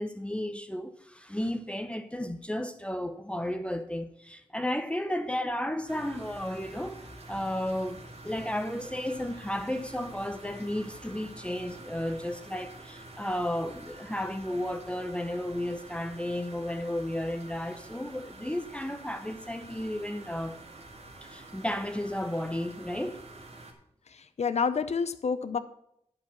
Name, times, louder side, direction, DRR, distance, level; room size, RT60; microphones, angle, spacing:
voice 1, 0.0-7.0 7.3-8.0 8.2-20.6 21.2-23.2, left 1 dB, 10° left, 0.7 m, -33 dB
sound 1, 5.9-23.7, right 2 dB, 60° right, 1.8 m, -48 dB
voice 2, 24.1-25.6, left 5 dB, 65° left, 0.6 m, -29 dB
10.5 x 4.8 x 7.1 m
wide cardioid pair, 80°, 12 cm